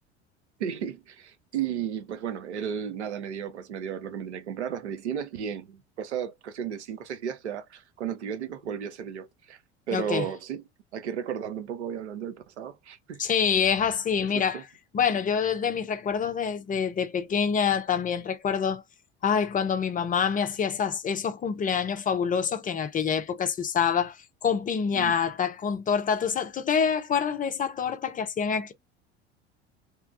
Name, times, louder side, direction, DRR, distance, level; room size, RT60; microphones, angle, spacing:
voice 1, 0.6-9.6 9.9-10.6 10.9-13.2 14.2-14.6 24.9-25.2, right 8 dB, 80° right, 0.7 m, -34 dB
voice 2, 9.9-10.2 13.2-14.6 14.9-18.8 19.2-24.2 24.4-28.7, left 7 dB, 25° left, 0.5 m, -26 dB
3.0 x 2.2 x 2.4 m
hypercardioid pair, 75°, 33 cm